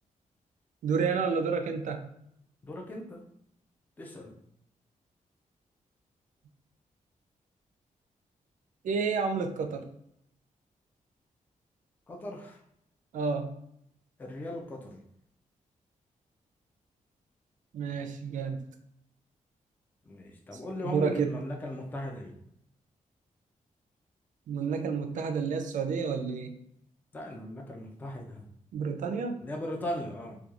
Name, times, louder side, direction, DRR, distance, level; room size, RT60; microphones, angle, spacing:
voice 1, 0.8-2.1 8.8-9.9 13.1-13.5 17.7-18.6 20.5-21.4 24.5-26.5 28.7-29.4, right 5 dB, 70° right, 6 dB, 0.4 m, -30 dB
voice 2, 2.6-3.3 4.0-4.4 12.1-12.6 14.2-15.0 20.1-22.4 27.1-28.4 29.4-30.4, left 1 dB, 15° left, 1 dB, 0.3 m, -38 dB
2.9 x 2.2 x 2.3 m, 0.74 s
wide cardioid pair, 170°, 14 cm